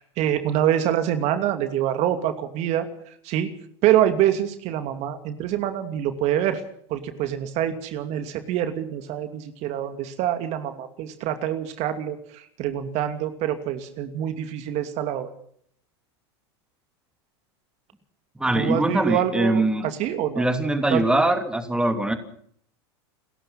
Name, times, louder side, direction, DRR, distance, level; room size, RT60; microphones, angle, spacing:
voice 1, 0.0-2.9 3.2-3.5 3.8-6.6 6.9-15.3 18.5-20.5 20.9-21.0, right 11 dB, 50° right, 8 dB, 2.7 m, -25 dB
voice 2, 18.4-19.9 20.4-22.1, right 1 dB, 5° right, 7 dB, 2.9 m, -22 dB
29.5 x 15.0 x 5.9 m, 0.63 s
hypercardioid pair, 100°, 14 cm